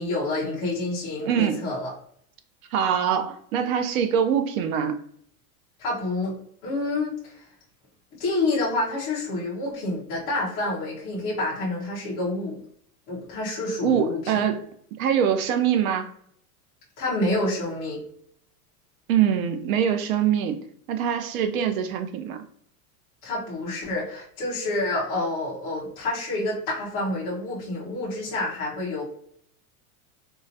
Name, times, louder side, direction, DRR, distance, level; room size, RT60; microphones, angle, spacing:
voice 1, 0.0-1.9 5.8-6.3 6.6-7.4 8.2-12.6 13.1-14.4 17.0-18.0 23.2-29.0, left 2 dB, 15° left, 0.3 m, -28 dB
voice 2, 1.2-1.6 2.7-5.0 13.8-14.7 15.0-16.1 19.1-20.6 20.9-22.4, right 8 dB, 65° right, 0.6 m, -23 dB
3.8 x 2.1 x 2.6 m
supercardioid pair, 165°, 45 cm